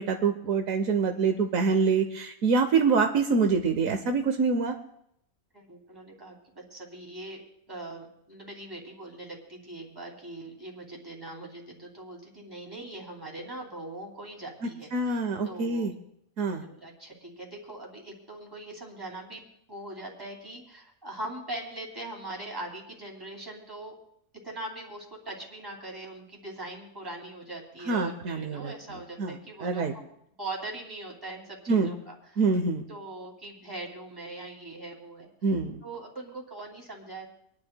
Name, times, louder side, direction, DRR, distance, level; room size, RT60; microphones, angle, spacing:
voice 1, 0.0-4.7 14.9-15.9 16.4-16.6 27.9-29.9 31.7-31.9 32.4-32.8 35.4-35.8, right 4 dB, 75° right, 6 dB, 1.2 m, -26 dB
voice 2, 5.5-7.4 7.7-15.9 16.6-24.0 24.4-30.0 30.4-32.4 32.9-35.3 35.8-37.3, right 2 dB, 15° right, -1 dB, 2.6 m, -41 dB
26.5 x 10.5 x 2.2 m, 0.74 s
omnidirectional pair, 1.5 m